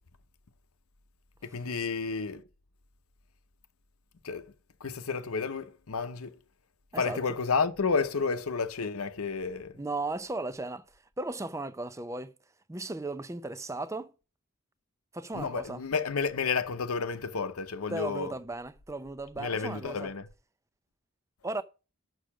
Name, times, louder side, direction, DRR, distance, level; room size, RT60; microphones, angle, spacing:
voice 1, 1.4-2.4 4.2-4.5 4.8-6.4 7.0-9.8 15.3-18.3 19.4-20.3, left 5 dB, 85° left, 0.8 m, -31 dB
voice 2, 9.8-10.8 11.2-12.3 12.7-14.1 15.1-15.8 17.9-20.1 21.4-21.6, right 2 dB, 15° right, 0.5 m, -36 dB
6.7 x 6.3 x 5.9 m
head